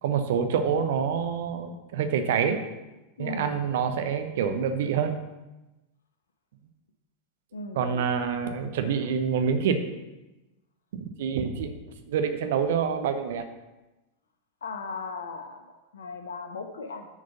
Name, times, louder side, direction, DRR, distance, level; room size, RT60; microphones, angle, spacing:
voice 1, 0.0-2.6 3.2-5.2 7.7-9.8 11.0-11.8 12.1-13.5, right 7 dB, 55° right, 7 dB, 0.9 m, -26 dB
voice 2, 3.2-3.5 7.5-8.4 14.6-17.1, left 4 dB, 65° left, 6 dB, 1.1 m, -38 dB
9.6 x 5.0 x 5.6 m, 1.1 s
figure-of-eight pair, 90°, 0 cm